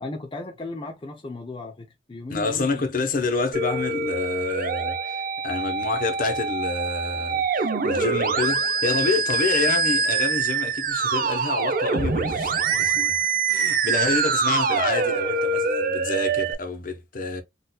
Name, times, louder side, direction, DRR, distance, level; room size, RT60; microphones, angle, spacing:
voice 1, 0.0-2.9, left 2 dB, 30° left, 0.6 m, -36 dB
voice 2, 2.3-17.4, left 3 dB, 50° left, 0.9 m, -28 dB
Musical instrument, 3.5-16.5, right 4 dB, 55° right, 0.6 m, -24 dB
4.3 x 2.6 x 2.2 m
head